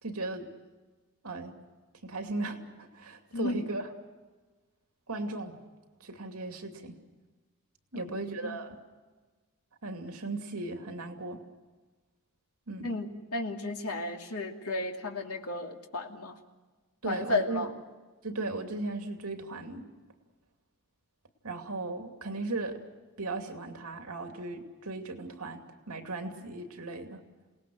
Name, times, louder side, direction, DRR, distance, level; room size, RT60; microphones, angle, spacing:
voice 1, 0.0-0.5 1.2-1.5 2.0-3.9 5.1-5.6 6.0-6.9 7.9-8.8 9.8-11.4 12.7-13.0 17.0-17.7 18.2-19.8 21.4-22.8 23.2-25.6 25.9-27.2, right 2 dB, 80° right, 4 dB, 2.6 m, -37 dB
voice 2, 3.3-3.6 7.9-8.6 12.8-16.4 17.0-17.7, left 2 dB, 85° left, 2 dB, 2.7 m, -33 dB
29.0 x 19.0 x 6.4 m, 1.3 s
head